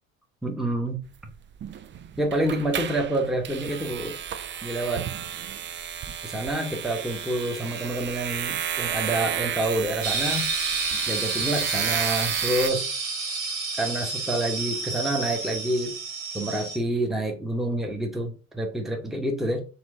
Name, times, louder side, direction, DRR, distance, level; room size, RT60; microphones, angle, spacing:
voice 1, 0.4-1.3 2.2-4.2 4.6-5.1 6.2-10.5 11.1-12.8 13.8-16.0 16.3-19.6, right 1 dB, ahead, 1.0 m, -28 dB
sound 1, 1.1-12.7, right 9 dB, 30° right, 0.4 m, -32 dB
sound 2, 10.0-16.8, right 3 dB, 85° right, 1.3 m, -30 dB
4.6 x 3.0 x 3.7 m
hypercardioid pair, 65°, 40 cm